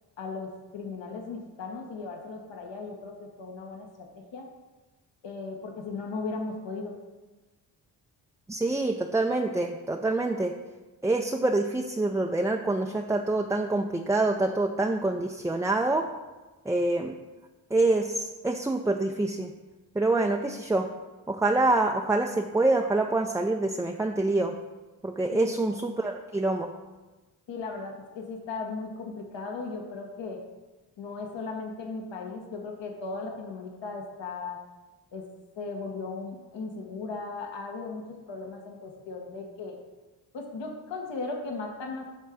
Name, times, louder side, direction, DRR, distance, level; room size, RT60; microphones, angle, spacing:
voice 1, 0.2-4.5 5.2-7.0 25.3-25.6 27.5-30.4 31.0-34.6 35.1-35.2 35.6-39.8 40.3-42.1, left 3 dB, 65° left, 2 dB, 1.4 m, -37 dB
voice 2, 8.5-10.5 11.0-16.1 16.7-17.1 17.7-19.5 19.9-20.9 21.3-24.5 25.0-26.7, right 2 dB, 5° right, 2 dB, 0.4 m, -26 dB
8.7 x 3.7 x 5.9 m, 1.2 s
supercardioid pair, 55°, 47 cm